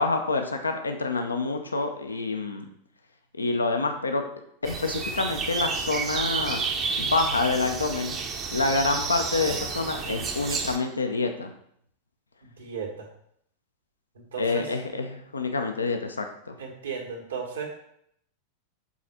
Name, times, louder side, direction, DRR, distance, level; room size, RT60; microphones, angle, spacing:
voice 1, 0.0-2.6 3.4-4.2 4.6-6.6 7.0-8.2 8.5-11.5 14.4-16.5, left 3 dB, 75° left, 5 dB, 0.7 m, -27 dB
sound 1, 4.6-10.8, right 5 dB, 30° right, 0.8 m, -31 dB
voice 2, 12.4-13.1 14.3-14.6 16.6-17.7, right 6 dB, 65° right, 1 dB, 1.5 m, -35 dB
7.2 x 4.2 x 4.3 m, 0.70 s
figure-of-eight pair, 90°, 0 cm